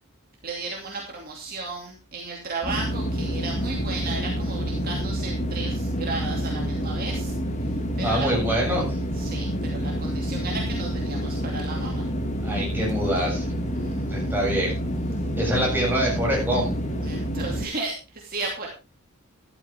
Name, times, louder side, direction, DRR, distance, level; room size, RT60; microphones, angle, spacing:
voice 1, 0.4-7.3 7.6-8.3 9.1-12.1 13.8-14.3 15.5-15.6 17.0-18.7, right 3 dB, 40° right, 0 dB, 2.6 m, -34 dB
sound 1, 2.6-17.6, equal, 30° left, 2.1 m, -28 dB
voice 2, 8.0-9.0 12.4-13.5 14.1-14.8 15.4-16.7, equal, 10° right, -3 dB, 7.7 m, -25 dB
13.5 x 12.5 x 3.6 m, 0.30 s
head